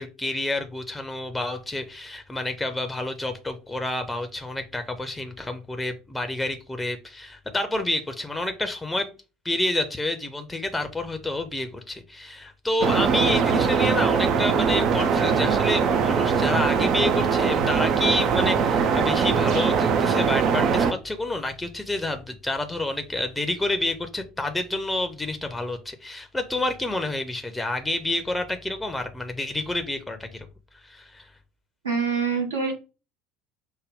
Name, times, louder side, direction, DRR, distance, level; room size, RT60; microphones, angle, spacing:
voice 1, 0.0-9.1 9.4-30.5 30.8-31.3, left 2 dB, 10° left, 6 dB, 0.6 m, -29 dB
sound 1, 12.8-20.9, right 6 dB, 50° right, 0.4 m, -21 dB
voice 2, 31.8-32.7, right 5 dB, 75° right, 0 dB, 1.1 m, -25 dB
5.2 x 2.1 x 3.4 m, 0.31 s
figure-of-eight pair, 65°, 0 cm